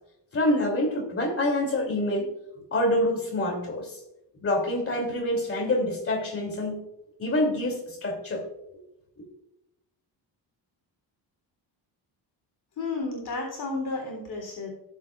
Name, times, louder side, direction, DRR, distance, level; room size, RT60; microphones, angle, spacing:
voice 1, 0.3-2.3 2.7-4.0 4.4-6.8 7.2-8.4, left 1 dB, 30° left, 1 dB, 2.9 m, -26 dB
voice 2, 12.8-14.7, left 3 dB, 55° left, -1 dB, 3.4 m, -32 dB
17.0 x 7.5 x 2.5 m, 0.88 s
cardioid pair, 155°, 44 cm